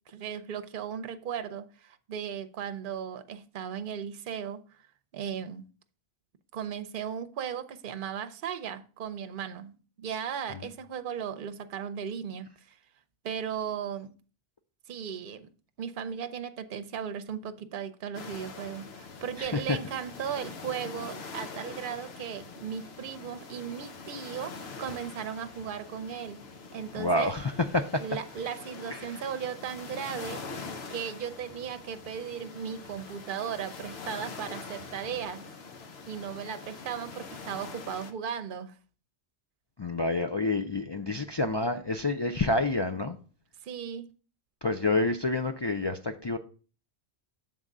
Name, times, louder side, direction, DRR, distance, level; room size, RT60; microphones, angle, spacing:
voice 1, 0.1-4.6 5.1-5.6 6.5-12.8 13.2-14.1 14.9-15.5 15.8-26.4 26.7-27.3 28.0-35.5 36.1-38.7 43.6-44.1, right 8 dB, 60° right, 0.8 m, -36 dB
sound 1, 18.1-38.1, left 4 dB, 75° left, 1.2 m, -44 dB
voice 2, 19.4-19.8 26.9-28.0 28.9-29.2 39.8-43.2 44.6-46.4, left 2 dB, 40° left, 0.4 m, -28 dB
7.5 x 3.7 x 6.5 m
omnidirectional pair, 1.1 m